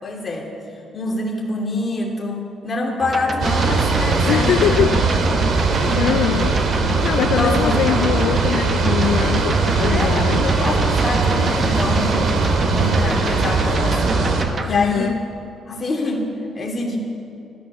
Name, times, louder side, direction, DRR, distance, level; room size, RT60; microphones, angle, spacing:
voice 1, 0.0-0.5 0.9-5.5 5.8-6.3 6.7-7.8 9.9-12.3 12.7-14.2 14.6-15.2 15.7-17.0, left 2 dB, 25° left, -1 dB, 2.9 m, -26 dB
sound 1, 3.0-14.7, right 3 dB, 30° right, 1.1 m, -27 dB
sound 2, 3.4-14.4, right 3 dB, 60° right, 2.2 m, -20 dB
voice 2, 4.3-5.0 5.8-6.6 7.0-10.4 14.7-15.2, left 11 dB, 90° left, 11 dB, 0.4 m, -22 dB
14.0 x 14.0 x 6.9 m, 2.8 s
cardioid pair, 140°, 0 cm